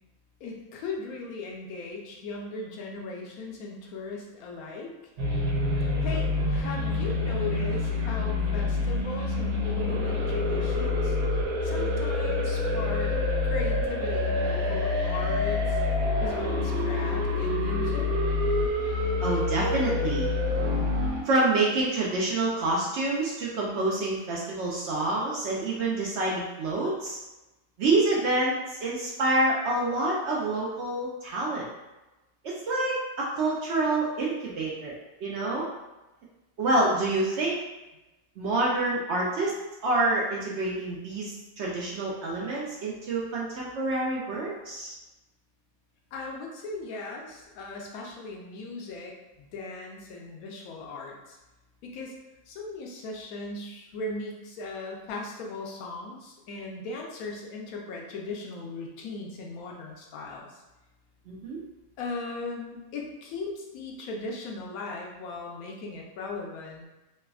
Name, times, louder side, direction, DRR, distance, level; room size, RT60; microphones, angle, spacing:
voice 1, 0.4-4.9 6.0-11.1 11.6-13.2 13.4-15.8 16.2-18.1 46.1-51.4 51.8-52.1 52.5-60.6 62.0-66.9, left 3 dB, 85° left, -1 dB, 1.0 m, -38 dB
sound 1, 5.2-21.2, left 2 dB, 85° right, 1.1 m, -27 dB
voice 2, 19.2-20.3 21.3-27.2 27.8-28.6 28.8-31.7 32.4-34.9 35.2-35.7 36.6-37.6 38.4-44.9 61.3-61.6, right 2 dB, 65° right, -4 dB, 0.7 m, -27 dB
3.3 x 2.1 x 2.3 m, 1.0 s
omnidirectional pair, 1.5 m